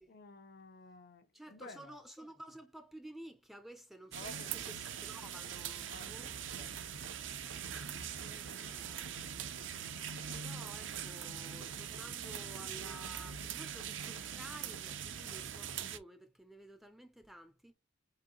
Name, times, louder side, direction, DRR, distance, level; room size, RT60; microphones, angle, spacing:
voice 1, 0.1-2.0 4.1-4.7 5.9-6.9, left 2 dB, 50° left, 0.6 m, -53 dB
voice 2, 1.3-6.4 7.7-9.1 10.3-17.7, right 1 dB, ahead, 0.4 m, -53 dB
sound 1, 4.1-16.0, right 8 dB, 70° right, 0.5 m, -42 dB
4.8 x 2.9 x 2.9 m
head